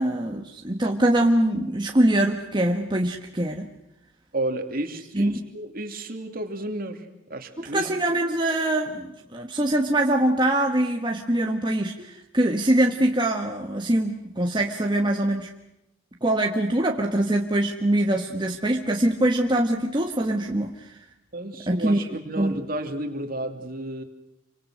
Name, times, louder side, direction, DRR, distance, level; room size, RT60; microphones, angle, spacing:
voice 1, 0.0-3.7 5.1-5.4 7.7-11.9 12.3-15.5 16.2-21.0 21.7-22.0 22.4-22.6, right 1 dB, 25° right, 2 dB, 1.4 m, -23 dB
voice 2, 4.3-7.9 12.0-12.1 21.3-24.0, right 1 dB, 50° right, 5 dB, 2.9 m, -32 dB
28.5 x 25.0 x 6.4 m, 0.88 s
head